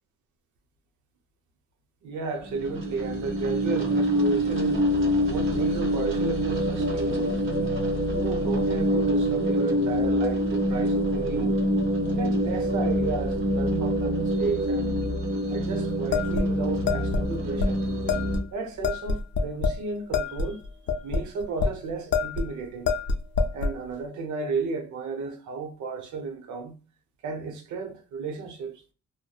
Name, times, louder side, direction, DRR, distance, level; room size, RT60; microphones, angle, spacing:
voice 1, 2.0-4.9 5.3-7.4 8.1-11.6 12.2-15.0 15.5-17.8 18.5-20.6 21.0-22.9 23.5-26.8 27.2-28.8, right 4 dB, 75° right, 0.8 m, -33 dB
sound 1, 2.4-18.4, equal, 45° right, 1.1 m, -25 dB
sound 2, 16.1-17.2 17.6-17.7 18.1-18.4 18.8-19.8 20.1-21.7 22.1-22.5 22.9-23.8, left 4 dB, 40° left, 0.5 m, -26 dB
2.6 x 2.1 x 2.3 m
cardioid pair, 90°, 30 cm